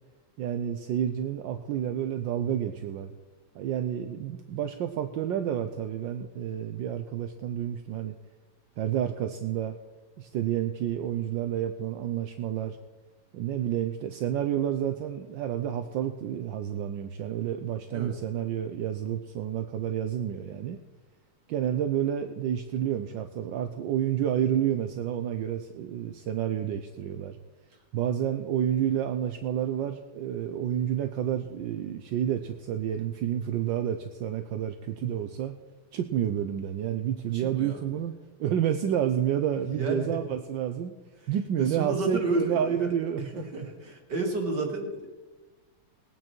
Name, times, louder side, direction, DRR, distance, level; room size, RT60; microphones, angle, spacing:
voice 1, 0.4-3.1 3.5-8.2 8.8-9.7 10.2-12.8 13.3-20.8 21.5-27.4 27.9-35.5 35.9-38.1 38.4-40.9 41.3-43.4, right 10 dB, 75° right, 7 dB, 1.3 m, -29 dB
voice 2, 37.3-37.8 39.7-40.2 41.6-45.1, right 2 dB, 55° right, 1 dB, 2.7 m, -32 dB
20.0 x 9.1 x 4.5 m, 1.2 s
omnidirectional pair, 2.2 m